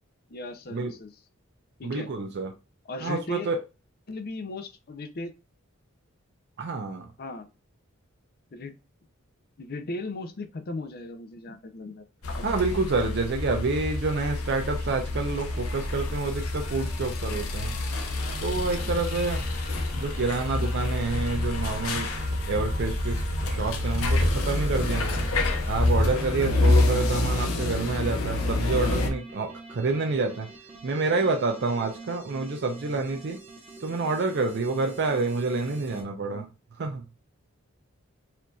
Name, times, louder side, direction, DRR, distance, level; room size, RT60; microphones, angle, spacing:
voice 1, 0.3-1.2 1.8-2.1 2.8-3.5 4.1-5.3 7.2-7.5 8.5-8.8 9.6-12.0 12.3-12.5 20.5-20.7 36.3-36.4, left 2 dB, 45° left, 9 dB, 0.5 m, -37 dB
voice 2, 1.8-2.5 3.0-3.6 6.6-7.1 12.4-17.8 18.4-19.6 20.0-25.3 25.7-30.5 30.8-33.4 33.8-36.5 36.8-37.0, right 3 dB, 55° right, 4 dB, 0.5 m, -28 dB
sound 1, 12.2-29.1, left 2 dB, 85° left, 0.7 m, -27 dB
sound 2, 18.2-26.5 27.1-36.0, right 2 dB, 30° right, 0.8 m, -45 dB
4.3 x 2.7 x 2.3 m, 0.29 s
head